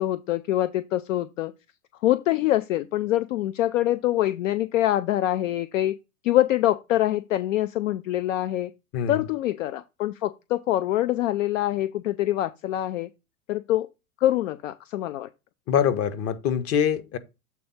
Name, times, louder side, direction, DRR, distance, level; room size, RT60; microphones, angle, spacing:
voice 1, 0.0-1.5 2.0-6.0 6.2-8.7 9.1-13.1 13.5-13.9 14.2-15.3, left 14 dB, 60° left, 0.7 m, -25 dB
voice 2, 15.7-17.2, left 8 dB, 30° left, 0.9 m, -24 dB
7.7 x 3.5 x 5.4 m
hypercardioid pair, 105°, 44 cm